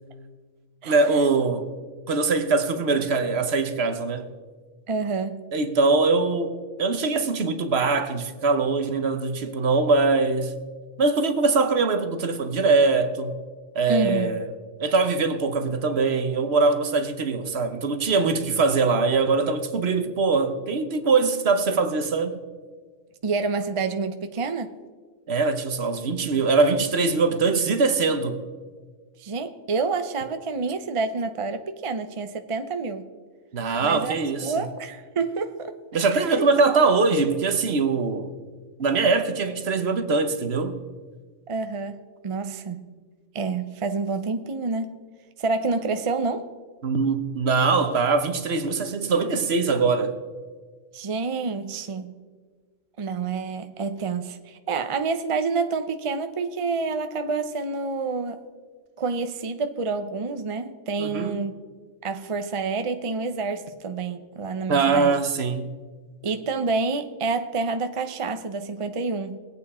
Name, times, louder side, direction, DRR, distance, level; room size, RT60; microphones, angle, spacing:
voice 1, 0.8-1.7 2.1-4.3 5.5-10.5 11.0-13.4 13.7-14.5 14.8-22.4 25.3-28.4 33.5-34.6 35.9-38.3 38.8-40.8 46.8-50.2 61.0-61.4 64.7-65.7, right 4 dB, 55° right, 1.1 m, -22 dB
voice 2, 4.9-5.4 13.9-14.3 23.2-24.7 29.2-33.1 33.8-35.8 36.1-36.5 41.5-42.8 43.3-45.0 45.4-46.5 50.9-52.1 53.0-58.4 59.0-61.5 62.0-65.1 66.2-69.4, right 4 dB, 35° right, 0.5 m, -28 dB
21.0 x 8.6 x 4.2 m
omnidirectional pair, 1.3 m